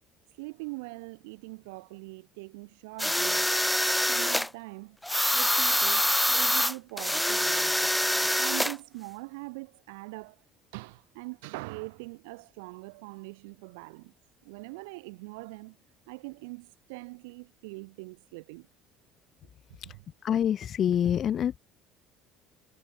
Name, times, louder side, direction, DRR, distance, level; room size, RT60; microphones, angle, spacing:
voice 1, 0.3-3.6 4.1-5.0 5.3-10.4 10.7-14.1 14.4-15.8 16.1-18.7, right 27 dB, 75° right, 5.9 m, -42 dB
sound 1, 3.0-4.5 5.0-8.7, left 1 dB, 5° left, 0.6 m, -25 dB
voice 2, 20.2-21.6, left 9 dB, 50° left, 3.2 m, -26 dB
hypercardioid pair, 65°, 0 cm